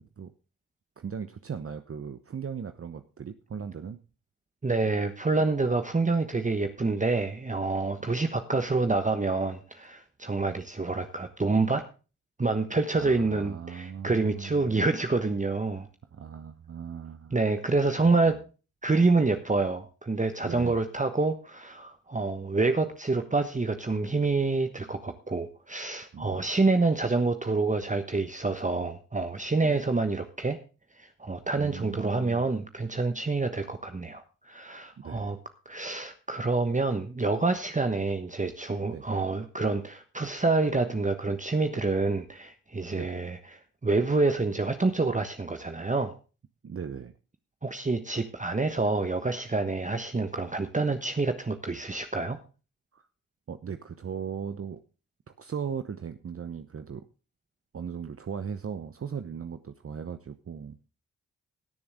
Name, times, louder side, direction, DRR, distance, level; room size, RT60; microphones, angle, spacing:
voice 1, 1.0-4.0 8.0-8.1 13.0-14.9 16.1-17.4 18.2-18.4 20.4-20.8 26.1-26.5 29.6-29.9 31.6-32.4 35.0-35.3 38.9-39.0 42.9-43.1 46.6-47.1 52.9-53.1 53.5-54.8 55.4-57.0 57.7-60.8, right 7 dB, 35° right, 10 dB, 0.9 m, -38 dB
voice 2, 4.6-11.8 12.4-15.9 17.3-18.4 18.8-30.6 31.0-35.4 35.6-43.4 43.8-46.1 47.6-52.4, right 3 dB, 20° right, 7 dB, 1.2 m, -27 dB
20.0 x 6.9 x 3.6 m, 0.33 s
hypercardioid pair, 40°, 38 cm